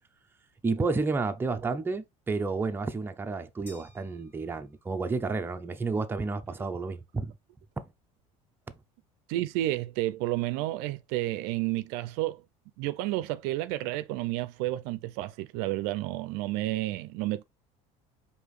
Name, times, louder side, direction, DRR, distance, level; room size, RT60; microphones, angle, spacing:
voice 1, 0.6-7.3 7.8-7.9, right 3 dB, 15° right, 0.5 m, -31 dB
sound 1, 3.7-5.1, left 1 dB, 10° left, 1.5 m, -56 dB
voice 2, 9.3-12.4 12.8-17.4, right 16 dB, 75° right, 0.4 m, -31 dB
4.8 x 2.8 x 3.1 m
supercardioid pair, 105°, 16 cm